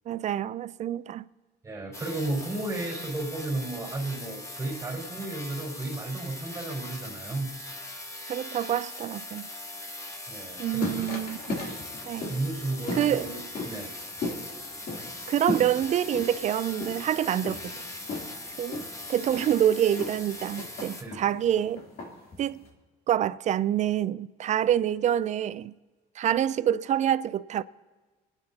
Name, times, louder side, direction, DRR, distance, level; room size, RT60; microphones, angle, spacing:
voice 1, 0.1-1.3 8.3-9.5 10.6-11.6 12.1-12.3 12.9-13.3 15.3-17.6 18.6-21.8 22.4-22.6 23.1-25.7 26.2-27.6, right 11 dB, 45° right, 0.4 m, -27 dB
voice 2, 1.6-7.5 10.3-11.1 12.3-13.9 21.0-21.2, right 2 dB, 20° right, 4.0 m, -33 dB
sound 1, 1.9-21.0, left 1 dB, 15° left, 1.2 m, -41 dB
sound 2, 10.4-22.7, left 2 dB, 60° left, 3.1 m, -37 dB
29.0 x 9.7 x 2.8 m
cardioid pair, 110°, 17 cm